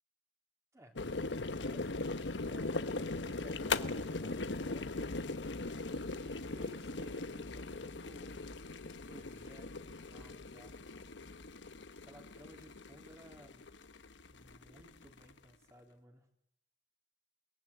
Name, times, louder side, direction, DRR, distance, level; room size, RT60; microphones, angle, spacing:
voice 1, 0.7-2.0 2.4-5.3 6.2-8.5 9.1-11.0 12.0-13.7 14.3-16.3, equal, 15° right, 3 dB, 3.8 m, -58 dB
sound 1, 1.0-15.4, left 3 dB, 90° left, 1.2 m, -40 dB
29.0 x 20.0 x 8.5 m, 0.80 s
head